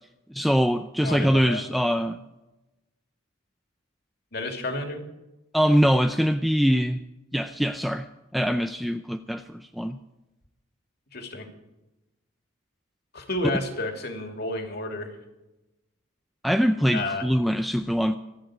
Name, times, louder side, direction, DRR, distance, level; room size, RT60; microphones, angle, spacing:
voice 1, 0.3-2.2 5.5-7.0 7.3-8.1 8.3-10.0 16.4-18.2, equal, ahead, 8 dB, 0.4 m, -23 dB
voice 2, 1.0-1.6 4.3-5.0 11.1-11.5 13.1-15.1 16.9-17.2, left 2 dB, 50° left, 4 dB, 2.7 m, -31 dB
25.5 x 9.0 x 4.9 m, 0.99 s
head